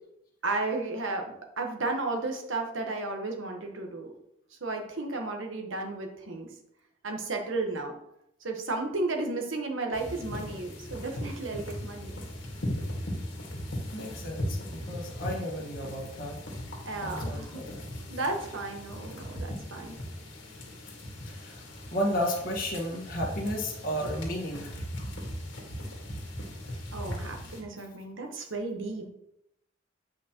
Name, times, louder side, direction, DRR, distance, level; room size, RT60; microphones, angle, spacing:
voice 1, 0.4-4.1 4.6-6.5 7.0-8.0 8.4-12.1 16.8-17.6 18.1-20.0 26.9-29.1, right 3 dB, 75° right, 3 dB, 1.2 m, -33 dB
sound 1, 9.9-27.6, equal, 65° left, 1.7 m, -38 dB
voice 2, 13.9-16.4 17.0-17.8 21.3-21.6 21.9-24.8, equal, 45° left, -3 dB, 1.5 m, -33 dB
8.4 x 5.1 x 3.0 m, 0.80 s
head